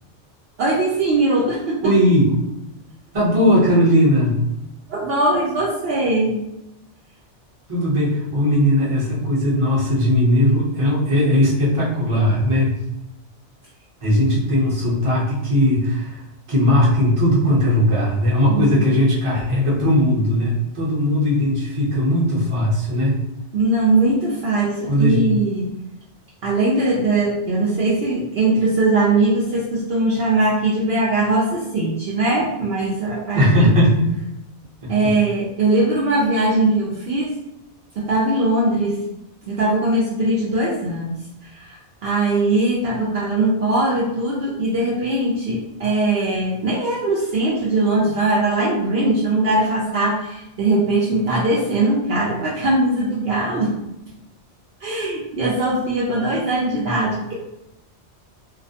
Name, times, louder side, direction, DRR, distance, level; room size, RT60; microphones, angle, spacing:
voice 1, 0.6-1.8 4.9-6.4 18.5-18.7 23.5-25.7 26.4-33.7 34.9-37.3 38.0-39.0 39.5-53.8 54.8-57.3, right 2 dB, 65° right, -5 dB, 0.7 m, -20 dB
voice 2, 1.8-2.2 3.1-4.5 7.7-12.8 14.0-16.2 16.5-23.2 24.8-25.3 33.3-34.2 34.8-35.1, equal, 30° right, -6 dB, 0.8 m, -18 dB
2.4 x 2.1 x 2.7 m, 0.87 s
omnidirectional pair, 1.2 m